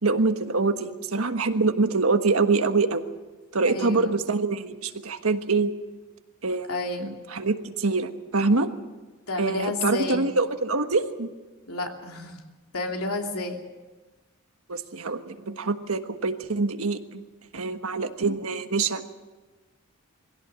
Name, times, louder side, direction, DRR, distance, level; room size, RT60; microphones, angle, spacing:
voice 1, 0.0-3.0 3.5-5.7 6.4-6.7 7.0-8.7 9.4-11.3 14.7-17.2 17.5-19.0, right 3 dB, 80° right, 8 dB, 1.4 m, -25 dB
voice 2, 3.6-4.1 6.7-7.1 9.3-10.3 11.7-12.4 12.7-13.6, left 2 dB, 85° left, 2 dB, 3.0 m, -31 dB
22.0 x 16.5 x 7.6 m, 1.3 s
head